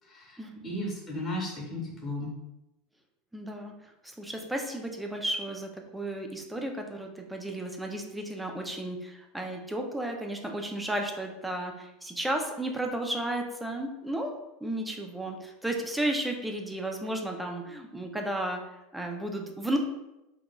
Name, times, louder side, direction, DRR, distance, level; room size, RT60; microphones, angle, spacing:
voice 1, 0.1-2.3, left 1 dB, 15° left, -3 dB, 1.2 m, -35 dB
voice 2, 3.3-3.7 4.2-14.3 14.6-18.6 18.9-19.8, right 1 dB, 5° right, 2 dB, 0.4 m, -33 dB
3.7 x 3.0 x 2.2 m, 0.95 s
supercardioid pair, 135°, 0 cm